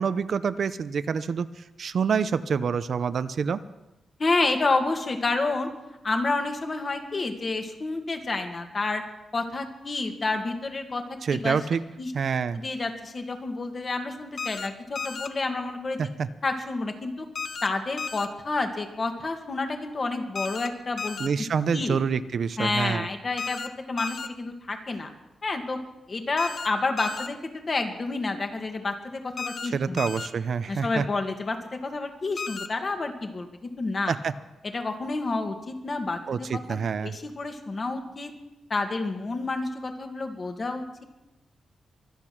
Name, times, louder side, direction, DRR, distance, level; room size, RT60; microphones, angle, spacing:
voice 1, 0.0-1.5 1.8-3.6 11.2-11.8 12.1-12.6 16.0-16.3 21.2-23.1 29.7-31.0 34.1-34.3 36.3-37.1, right 6 dB, 60° right, 13 dB, 0.6 m, -27 dB
voice 2, 4.2-5.7 6.0-9.0 9.3-11.6 12.0-12.1 12.5-16.0 16.4-17.3 17.6-21.3 21.7-22.0 22.6-25.1 25.4-25.8 26.1-27.4 27.7-30.0 30.7-34.1 34.7-36.8 37.0-38.3 38.7-41.0, left 3 dB, 40° left, 5 dB, 2.0 m, -29 dB
sound 1, 14.4-14.7 15.0-15.3 17.4-17.7 18.0-18.3 20.4-20.7 21.0-21.3 23.4-23.7 24.0-24.3 26.4-26.7 27.0-27.3 29.4-29.7 30.0-30.3 32.4-32.7, left 5 dB, 60° left, 0.9 m, -33 dB
24.0 x 8.3 x 6.0 m, 0.98 s
cardioid pair, 100°, 0 cm